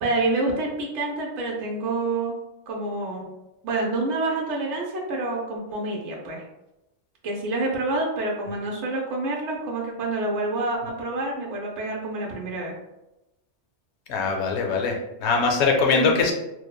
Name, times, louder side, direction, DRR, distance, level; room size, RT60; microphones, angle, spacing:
voice 1, 0.0-2.4 2.7-3.3 3.6-6.4 7.2-12.7 15.9-16.2, right 2 dB, 80° right, -2 dB, 0.9 m, -27 dB
voice 2, 14.1-16.3, left 4 dB, 75° left, 1 dB, 0.8 m, -22 dB
3.0 x 2.0 x 2.2 m, 0.93 s
omnidirectional pair, 1.2 m